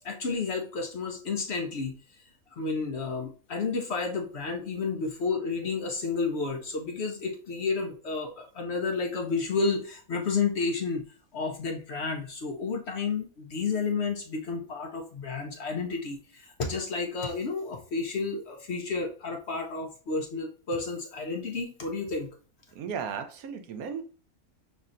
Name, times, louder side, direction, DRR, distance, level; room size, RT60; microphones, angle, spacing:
voice 1, 0.0-1.9 2.5-11.0 11.3-22.3, left 4 dB, 55° left, 3 dB, 0.8 m, -31 dB
voice 2, 22.7-24.0, right 7 dB, 80° right, 7 dB, 1.1 m, -35 dB
5.4 x 3.1 x 2.5 m, 0.39 s
omnidirectional pair, 1.5 m